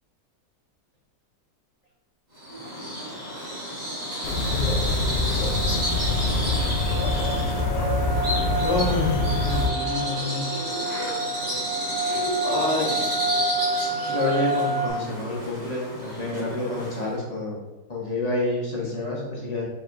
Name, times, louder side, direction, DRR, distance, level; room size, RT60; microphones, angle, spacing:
Bird vocalization bird call bird song, 2.4-17.2, equal, 30° right, 1.0 m, -31 dB
sound 1, 2.7-2.8 3.1-3.5 3.9-14.9, right 3 dB, 75° right, 1.2 m, -31 dB
sound 2, 4.2-9.7, left 2 dB, 75° left, 1.1 m, -25 dB
voice 1, 8.6-10.5 12.4-13.2 13.8-17.6 17.9-19.6, left 2 dB, 35° left, -4 dB, 0.7 m, -28 dB
5.7 x 2.9 x 2.6 m, 1.1 s
omnidirectional pair, 1.8 m